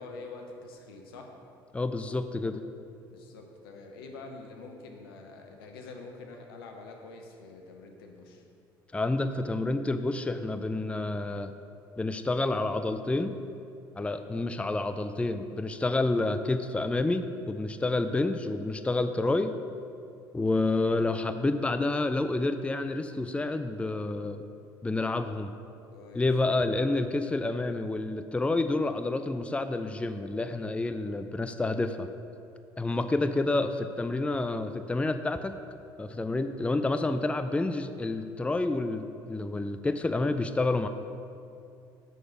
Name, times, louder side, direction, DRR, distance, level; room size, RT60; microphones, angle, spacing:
voice 1, 0.0-1.3 3.1-8.4 13.9-14.2 20.5-20.8 25.9-26.7 32.9-33.1, left 3 dB, 80° left, 3 dB, 1.0 m, -46 dB
voice 2, 1.7-2.6 8.9-11.5 12.0-13.3 14.0-19.5 20.3-24.4 24.8-25.5 26.1-32.1 32.8-35.5 36.0-40.9, left 2 dB, 10° left, 9 dB, 0.4 m, -29 dB
6.6 x 6.5 x 5.9 m, 2.5 s
hypercardioid pair, 60°, 12 cm